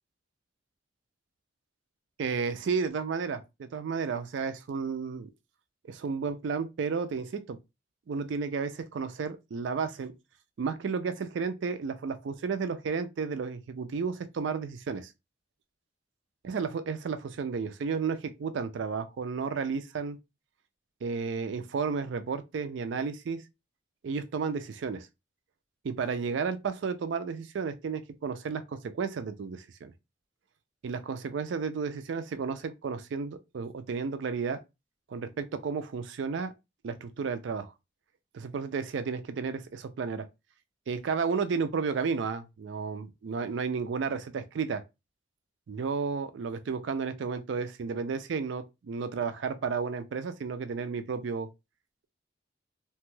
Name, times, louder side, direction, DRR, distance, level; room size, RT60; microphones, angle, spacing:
voice 1, 2.2-5.3 5.8-7.6 8.1-10.1 10.6-15.1 16.4-20.2 21.0-23.4 24.0-25.1 25.8-29.9 30.8-34.6 35.1-36.5 36.8-37.7 38.3-40.3 40.9-44.8 45.7-51.5, right 5 dB, 75° right, 0.4 m, -32 dB
2.9 x 2.2 x 3.1 m
head